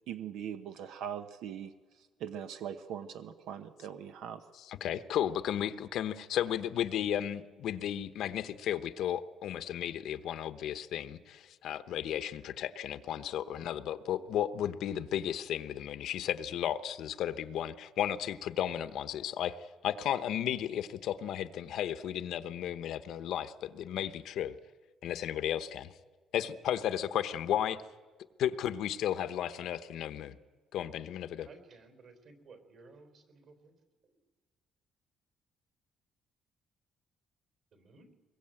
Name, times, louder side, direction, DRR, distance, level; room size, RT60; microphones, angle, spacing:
voice 1, 0.1-1.7 2.0-4.4, right 9 dB, 85° right, 9 dB, 1.0 m, -41 dB
voice 2, 4.7-19.6 19.8-24.6 25.0-25.9 26.3-27.8 28.4-30.4 30.7-31.5, left 10 dB, 65° left, 12 dB, 0.9 m, -34 dB
voice 3, 27.3-27.6 31.4-33.8 34.0-34.2 37.7-38.1, right 4 dB, 50° right, 8 dB, 3.8 m, -56 dB
24.0 x 22.0 x 8.9 m, 1.4 s
cardioid pair, 170°, 0 cm